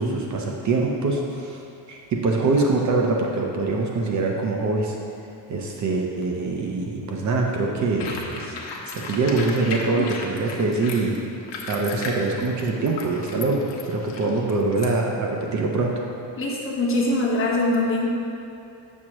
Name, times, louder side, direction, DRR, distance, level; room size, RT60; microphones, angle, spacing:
voice 1, 0.0-1.6 1.9-5.0 5.5-11.1 11.7-13.6 13.9-15.9, right 3 dB, 40° right, 0 dB, 0.6 m, -24 dB
sound 1, 8.0-14.9, left 3 dB, 75° left, 1.0 m, -35 dB
voice 2, 16.4-18.1, left 2 dB, 30° left, -3 dB, 0.9 m, -23 dB
7.4 x 6.4 x 2.9 m, 2.7 s
cardioid pair, 165°, 43 cm